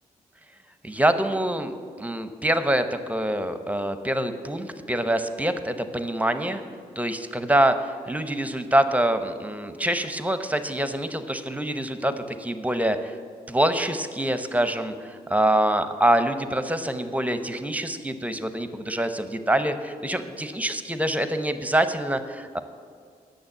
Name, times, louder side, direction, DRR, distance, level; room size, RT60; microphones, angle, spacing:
voice 1, 0.8-6.6 7.0-13.2 13.5-22.6, right 1 dB, 10° right, 10 dB, 0.8 m, -25 dB
8.7 x 6.6 x 8.0 m, 2.1 s
cardioid pair, 60°, 16 cm